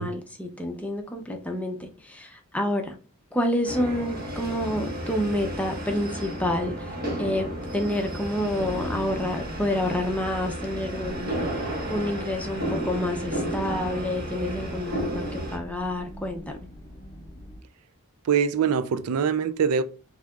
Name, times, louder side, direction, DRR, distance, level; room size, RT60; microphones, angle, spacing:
voice 1, 0.0-3.0 3.3-7.5 7.7-11.5 11.9-16.6, left 1 dB, 5° left, 0.6 m, -28 dB
sound 1, 3.6-15.6, right 1 dB, 45° right, 1.3 m, -32 dB
sound 2, 8.6-17.6, equal, 25° left, 1.0 m, -43 dB
voice 2, 18.2-19.8, right 7 dB, 80° right, 0.4 m, -23 dB
5.9 x 2.8 x 2.3 m
head